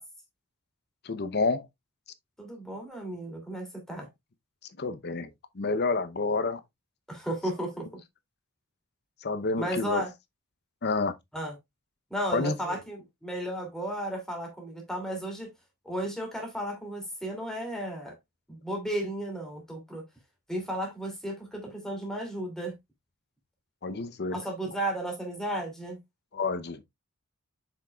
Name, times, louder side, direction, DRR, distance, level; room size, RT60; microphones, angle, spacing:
voice 1, 1.0-1.7 4.8-5.3 5.5-6.6 9.2-10.0 10.8-11.1 12.3-12.8 23.8-24.4 26.3-26.8, left 3 dB, 50° left, 0.8 m, -29 dB
voice 2, 2.4-4.1 7.1-8.0 9.6-10.1 11.3-11.5 12.1-15.5 15.8-18.2 18.5-20.0 20.5-22.7 24.3-26.0, right 1 dB, ahead, 2.8 m, -34 dB
7.3 x 6.1 x 2.3 m
head